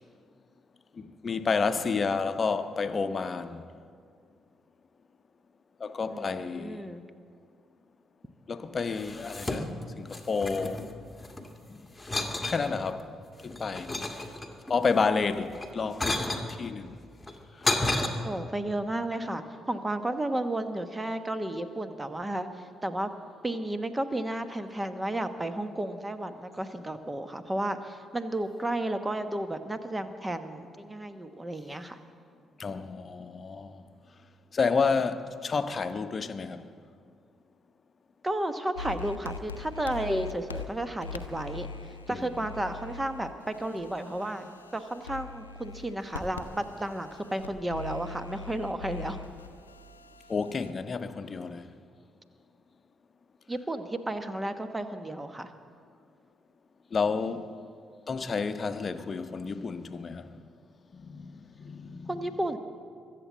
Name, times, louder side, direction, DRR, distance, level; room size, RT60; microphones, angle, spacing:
voice 1, 1.0-3.6 5.8-6.9 8.5-10.9 11.7-11.8 12.5-13.1 13.4-13.9 14.7-16.3 16.6-17.0 32.6-33.8 34.5-36.7 42.1-42.5 50.3-51.7 56.9-57.5 58.1-60.3 60.9-62.4, left 5 dB, 40° left, 0.9 m, -30 dB
voice 2, 6.1-7.0 18.2-22.5 22.8-23.1 23.4-32.0 38.2-41.7 42.1-49.2 53.5-55.5 62.1-62.6, right 1 dB, 15° right, 1.2 m, -33 dB
sound 1, 8.9-9.9 10.1-11.5 12.0-12.6 13.2-14.7 15.5-16.5 17.2-18.1, left 2 dB, 10° left, 2.0 m, -31 dB
sound 2, 38.8-50.7, left 5 dB, 85° left, 0.6 m, -42 dB
23.0 x 7.7 x 7.4 m
figure-of-eight pair, 45°, 0 cm